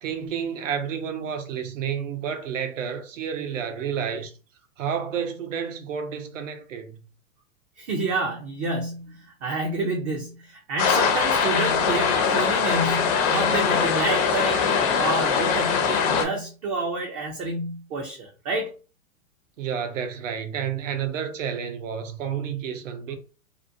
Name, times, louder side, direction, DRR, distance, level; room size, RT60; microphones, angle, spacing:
voice 1, 0.0-4.3 4.8-7.0 19.6-23.2, right 7 dB, 65° right, 0.7 m, -30 dB
voice 2, 7.8-18.7, right 2 dB, 30° right, 0.4 m, -29 dB
sound 1, 10.8-16.3, left 6 dB, 30° left, 0.5 m, -22 dB
2.6 x 2.1 x 2.5 m
hypercardioid pair, 110°, 40 cm